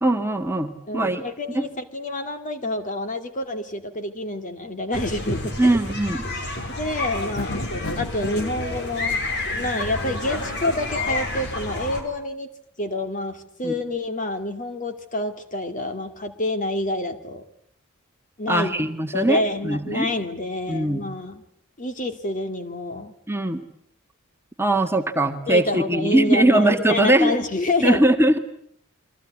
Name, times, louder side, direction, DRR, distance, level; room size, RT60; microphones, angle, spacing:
voice 1, 0.0-1.2 1.5-1.7 5.6-6.2 13.6-13.7 18.5-20.1 20.7-21.0 23.3-23.6 24.6-27.3 27.8-28.4, right 1 dB, 10° right, 5 dB, 1.6 m, -20 dB
voice 2, 0.9-5.7 6.8-7.6 8.0-9.2 9.5-12.5 12.8-17.4 18.4-18.7 19.1-21.4 21.8-23.1 25.5-28.0, left 1 dB, 40° left, 8 dB, 2.5 m, -28 dB
sound 1, 4.9-12.0, left 2 dB, 55° left, 5.2 m, -29 dB
sound 2, 7.4-8.5, left 3 dB, 75° left, 1.1 m, -33 dB
29.0 x 23.5 x 8.5 m, 0.67 s
head